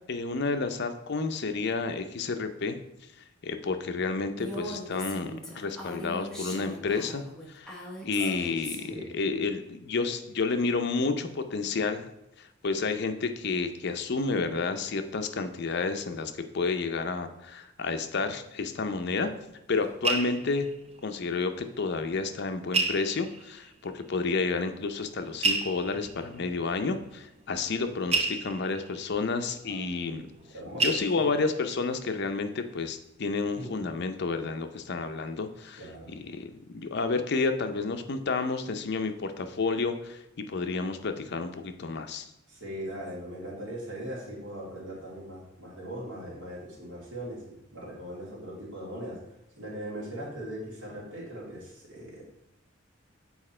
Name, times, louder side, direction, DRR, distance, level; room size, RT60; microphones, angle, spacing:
voice 1, 0.1-2.8 3.4-7.8 8.0-12.0 12.4-19.3 19.7-20.7 21.0-30.2 30.8-40.2 40.5-42.3, left 4 dB, 55° left, 8 dB, 0.6 m, -30 dB
Female speech woman speaking, 4.4-9.0, equal, 5° left, 1.1 m, -40 dB
voice 2, 8.2-9.1 25.9-26.0 29.7-29.8 30.5-30.9 31.1-31.3 33.5-33.7 35.8-36.1 42.5-49.2 49.6-52.3, right 1 dB, 65° right, -6 dB, 2.7 m, -40 dB
sound 1, 19.4-21.7 21.9-22.0 22.7-23.7 24.5-24.6 25.3-30.5 30.8-31.7 32.2-32.5 32.7-32.9, right 3 dB, 30° right, 0.5 m, -32 dB
7.1 x 4.3 x 4.3 m, 0.86 s
head